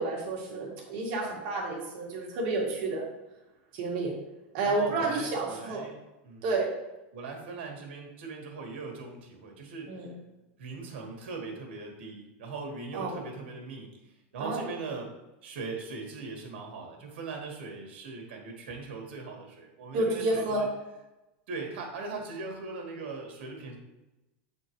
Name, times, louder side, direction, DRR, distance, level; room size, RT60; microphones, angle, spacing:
voice 1, 0.0-3.0 3.7-4.1 4.5-5.8 6.4-6.7 9.9-10.1 12.9-13.1 14.4-14.6 19.9-20.6, right 2 dB, 50° right, -3 dB, 1.9 m, -30 dB
voice 2, 4.6-6.0 6.2-6.4 7.1-10.0 10.6-13.9 14.3-15.2 15.4-20.7 21.5-23.8, right 4 dB, 80° right, 1 dB, 1.7 m, -40 dB
7.6 x 4.3 x 3.1 m, 1.0 s
supercardioid pair, 165°, 6 cm